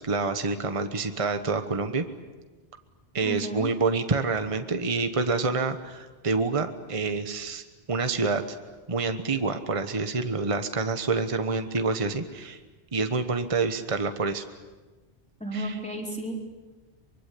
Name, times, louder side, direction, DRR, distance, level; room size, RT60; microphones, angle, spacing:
voice 1, 0.0-2.0 3.1-7.6 7.9-8.6 8.9-12.6 12.9-14.4 15.5-15.8, right 4 dB, 30° right, 8 dB, 1.2 m, -27 dB
voice 2, 3.2-3.7 15.4-16.4, right 1 dB, 5° left, 0 dB, 4.1 m, -33 dB
24.5 x 23.0 x 8.4 m, 1.3 s
omnidirectional pair, 1.2 m